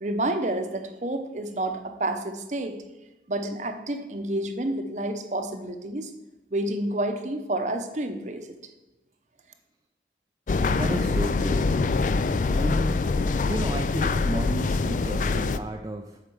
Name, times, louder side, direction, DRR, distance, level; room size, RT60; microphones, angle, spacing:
voice 1, 0.0-2.8 3.3-6.1 6.5-8.5, right 1 dB, 40° right, 7 dB, 0.8 m, -29 dB
sound 1, 10.5-15.6, left 3 dB, 45° left, 0.3 m, -24 dB
voice 2, 10.7-11.7 12.5-13.1 13.4-16.2, right 1 dB, 20° right, 2 dB, 0.4 m, -32 dB
7.9 x 5.0 x 7.0 m, 1.0 s
head